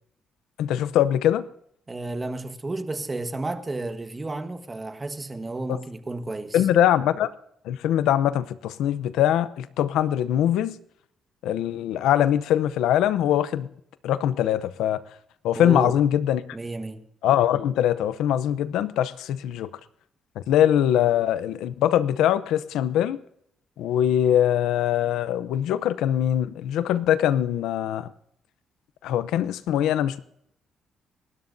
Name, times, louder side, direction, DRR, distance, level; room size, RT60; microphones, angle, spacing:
voice 1, 0.6-1.4 6.5-7.3 7.6-10.8 11.4-13.7 14.0-15.0 15.4-16.4 17.2-19.7 20.5-23.2 23.8-28.1 29.0-30.2, left 11 dB, 85° left, 0.6 m, -22 dB
voice 2, 1.9-6.6 15.5-16.0 16.5-17.0, right 2 dB, 20° right, 1.4 m, -32 dB
28.0 x 12.5 x 2.7 m
cardioid pair, 90°, 0 cm